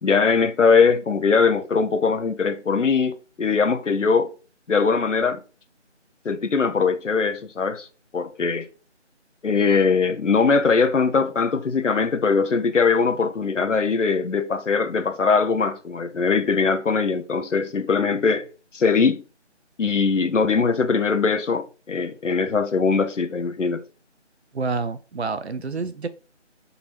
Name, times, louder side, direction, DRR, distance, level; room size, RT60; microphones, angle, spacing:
voice 1, 0.0-4.3 4.7-5.4 6.2-7.9 8.1-8.7 9.4-18.5 18.7-19.2 19.8-23.8, left 5 dB, 90° left, 0.7 m, -21 dB
voice 2, 24.5-26.1, right 4 dB, 65° right, 0.5 m, -28 dB
4.0 x 2.7 x 4.4 m
figure-of-eight pair, 170°, 36 cm